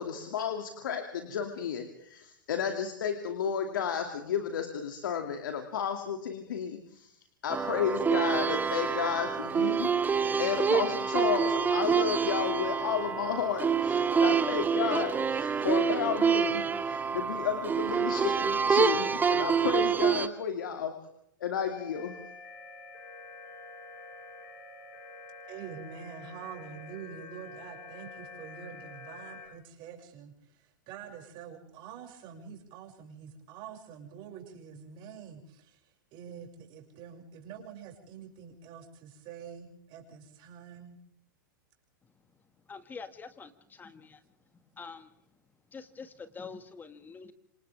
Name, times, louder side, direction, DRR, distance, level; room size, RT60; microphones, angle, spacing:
voice 1, 0.0-7.1 7.4-20.9 21.4-22.1, left 7 dB, 75° left, 5 dB, 2.6 m, -32 dB
sound 1, 7.5-20.3, right 6 dB, 15° right, 1.3 m, -27 dB
sound 2, 21.6-29.5, left 3 dB, 50° left, 7.7 m, -47 dB
voice 2, 25.5-41.0, right 7 dB, 45° right, 2 dB, 6.5 m, -46 dB
voice 3, 42.7-44.2 44.8-45.1 45.7-47.3, left 5 dB, 15° left, 10 dB, 2.0 m, -45 dB
28.0 x 26.0 x 3.5 m, 0.71 s
hypercardioid pair, 110°, 11 cm